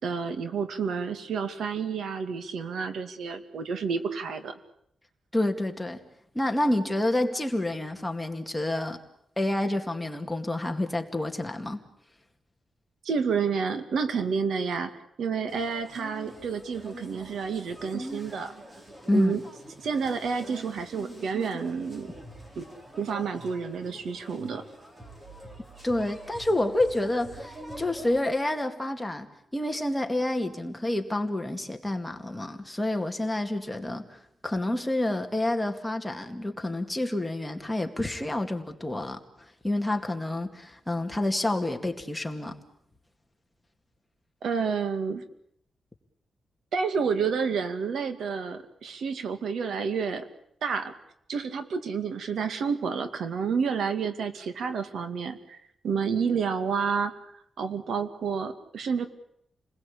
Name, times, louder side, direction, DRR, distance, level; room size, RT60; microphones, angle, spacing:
voice 1, 0.0-4.6 13.0-18.5 19.1-19.4 19.8-22.1 22.6-22.7 23.0-24.6 44.4-45.2 46.7-50.3 50.6-50.9 51.3-55.6 55.8-57.3 57.6-59.1, right 6 dB, 85° right, 9 dB, 2.3 m, -29 dB
voice 2, 5.3-6.0 6.3-9.0 9.4-11.8 19.1-19.4 25.8-29.3 29.5-42.6, left 1 dB, 5° left, 4 dB, 2.2 m, -28 dB
sound 1, 15.5-28.2, right 1 dB, 20° right, 3.8 m, -45 dB
29.5 x 20.5 x 8.6 m, 0.73 s
wide cardioid pair, 155°, 0 cm